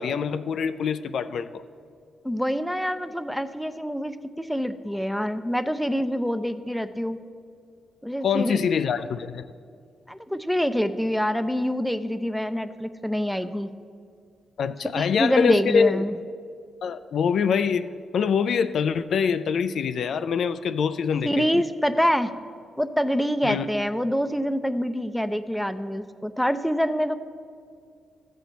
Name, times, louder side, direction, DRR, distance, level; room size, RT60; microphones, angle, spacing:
voice 1, 0.0-1.6 8.2-9.5 14.6-16.0 16.8-17.9 18.1-21.5 23.4-23.7, left 6 dB, 70° left, 11 dB, 0.3 m, -24 dB
voice 2, 2.2-7.2 8.0-8.6 10.1-13.7 15.0-16.1 21.2-22.3 22.8-27.1, equal, ahead, 10 dB, 0.5 m, -26 dB
12.5 x 4.3 x 8.0 m, 2.3 s
cardioid pair, 65°, 0 cm